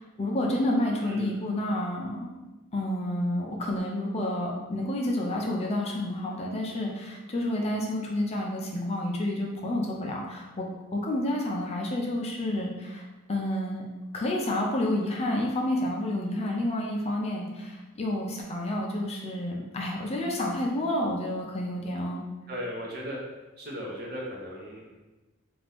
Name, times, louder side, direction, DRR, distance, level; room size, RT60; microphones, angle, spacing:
voice 1, 0.0-2.4 2.7-13.8 14.1-22.2, left 1 dB, 30° left, -1 dB, 0.4 m, -29 dB
voice 2, 22.5-23.2 23.6-24.9, equal, 50° right, -3 dB, 0.8 m, -37 dB
2.7 x 2.5 x 3.4 m, 1.1 s
head